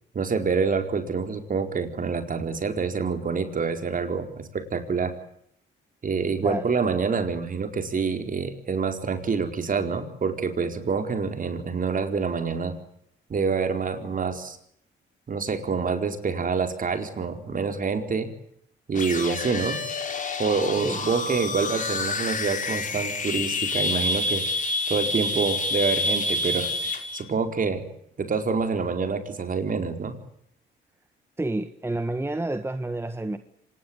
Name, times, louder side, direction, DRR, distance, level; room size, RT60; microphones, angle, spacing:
voice 1, 0.1-5.1 6.0-12.7 13.3-14.6 15.3-18.3 18.9-19.8 20.4-24.4 24.9-27.8 28.2-30.1, right 5 dB, 45° right, 4.6 m, -27 dB
sound 1, 18.9-27.2, left 2 dB, 40° left, 4.9 m, -28 dB
voice 2, 31.4-33.4, right 2 dB, 10° right, 1.5 m, -29 dB
25.5 x 20.5 x 9.7 m
cardioid pair, 90°, 20 cm